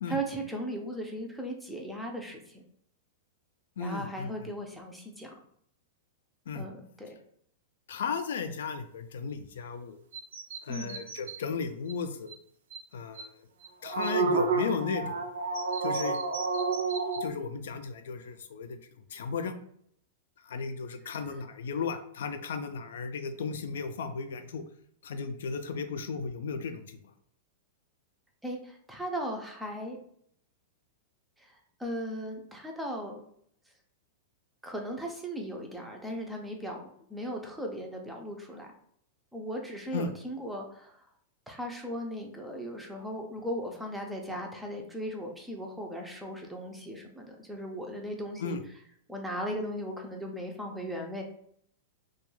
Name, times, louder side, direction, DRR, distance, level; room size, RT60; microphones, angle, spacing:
voice 1, 0.1-2.6 3.8-5.3 6.5-7.1 10.7-11.0 28.4-30.0 31.4-33.2 34.6-36.8 37.1-38.7 39.3-41.0 41.5-48.6 49.1-51.2, equal, 5° right, 1 dB, 0.4 m, -37 dB
voice 2, 3.8-4.5 6.5-6.7 7.9-10.0 10.6-12.3 12.9-13.3 13.8-15.2 15.8-16.2 17.2-18.8 19.1-19.5 20.4-24.6 25.0-27.0 39.9-40.1 48.4-48.6, left 5 dB, 85° left, 9 dB, 0.3 m, -35 dB
sound 1, 10.1-11.4 11.9-12.0 12.3-12.4 12.7-12.8 13.2-13.3 13.6-17.3, right 4 dB, 85° right, 0.4 m, -30 dB
2.2 x 2.2 x 3.1 m, 0.67 s
supercardioid pair, 155°, 0 cm